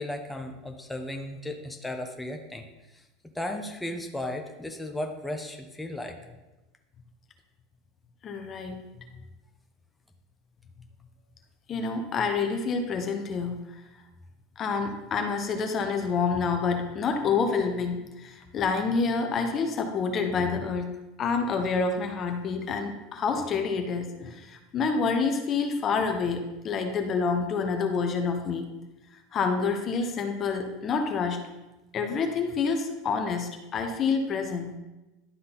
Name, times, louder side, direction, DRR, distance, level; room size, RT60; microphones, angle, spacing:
voice 1, 0.0-2.7 2.9-3.0 3.3-6.2, left 1 dB, 5° left, 3 dB, 1.0 m, -35 dB
voice 2, 8.2-8.8 11.7-13.6 14.6-20.9 21.2-28.7 29.3-31.4 31.9-34.7, left 5 dB, 40° left, 5 dB, 1.0 m, -28 dB
11.5 x 3.9 x 4.0 m, 1.0 s
hypercardioid pair, 90°, 0 cm